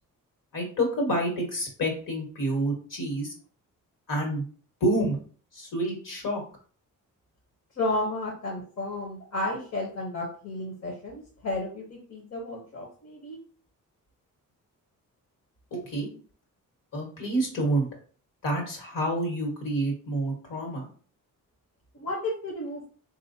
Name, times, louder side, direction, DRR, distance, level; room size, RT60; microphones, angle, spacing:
voice 1, 0.5-3.3 4.1-4.4 4.8-5.2 5.5-6.4 15.7-16.1 16.9-17.9 18.4-20.9, right 1 dB, 75° left, 0 dB, 1.6 m, -28 dB
voice 2, 7.8-13.4 21.9-22.8, left 1 dB, 50° left, -1 dB, 0.9 m, -32 dB
3.9 x 2.7 x 2.7 m, 0.42 s
cardioid pair, 115°, 33 cm